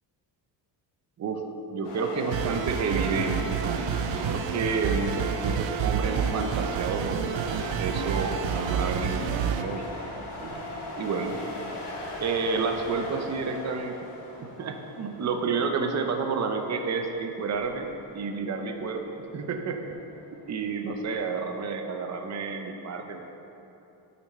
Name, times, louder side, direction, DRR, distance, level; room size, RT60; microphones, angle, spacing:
voice 1, 1.7-9.9 10.4-11.4 12.2-14.0 14.4-20.0 20.5-23.2, right 4 dB, 40° right, 5 dB, 0.5 m, -30 dB
sound 1, 1.8-21.4, left 1 dB, 65° left, 1.6 m, -40 dB
sound 2, 2.3-9.6, right 8 dB, 85° right, 0.5 m, -29 dB
8.8 x 4.1 x 4.3 m, 2.9 s
wide cardioid pair, 155°, 44 cm